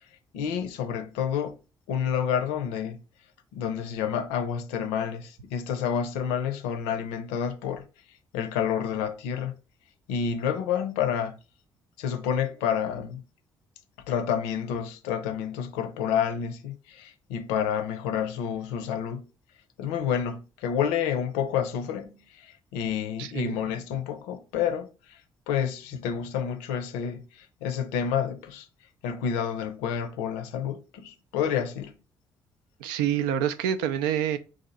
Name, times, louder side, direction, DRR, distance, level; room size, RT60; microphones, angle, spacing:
voice 1, 0.3-1.6 1.9-3.0 3.5-7.8 8.3-9.5 10.1-11.4 12.0-13.2 14.1-19.3 19.8-25.2 25.5-28.7 29.0-32.0, left 8 dB, 75° left, 0.5 m, -29 dB
voice 2, 23.2-23.6 32.8-34.4, right 10 dB, 75° right, 0.4 m, -27 dB
4.1 x 2.6 x 4.1 m
hypercardioid pair, 45°, 11 cm